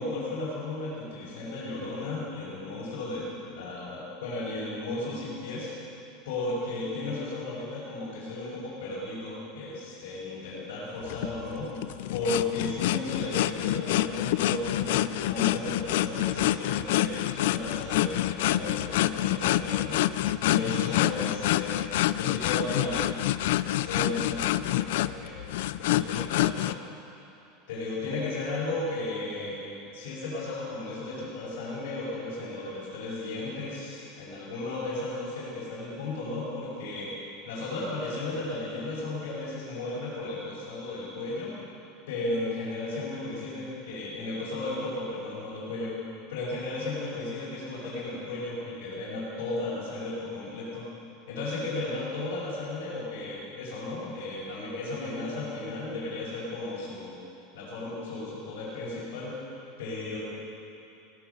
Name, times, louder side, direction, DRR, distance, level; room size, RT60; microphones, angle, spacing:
voice 1, 0.0-5.7 6.2-11.7 12.1-20.0 20.4-21.8 22.2-23.0 23.7-25.3 25.7-26.7 27.7-37.1 37.4-41.6 42.1-46.0 46.3-50.8 51.3-57.1 57.5-59.4 59.8-60.2, left 2 dB, 90° left, -8 dB, 5.0 m, -34 dB
sound 1, 11.1-26.8, left 14 dB, 70° left, 0.4 m, -27 dB
17.0 x 14.5 x 5.6 m, 2.7 s
supercardioid pair, 170°, 0 cm